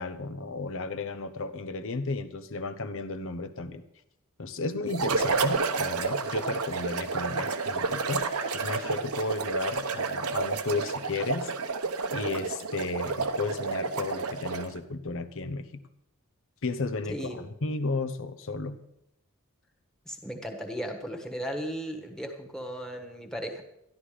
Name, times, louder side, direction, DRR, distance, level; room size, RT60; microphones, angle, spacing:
voice 1, 0.0-3.8 4.4-11.5 12.1-15.8 16.6-18.8, left 3 dB, 65° left, 10 dB, 0.9 m, -33 dB
sound 1, 4.9-14.8, right 4 dB, 80° right, 1.0 m, -30 dB
voice 2, 17.1-17.4 20.0-23.6, equal, 5° left, 3 dB, 1.5 m, -36 dB
13.0 x 11.5 x 5.0 m, 0.80 s
head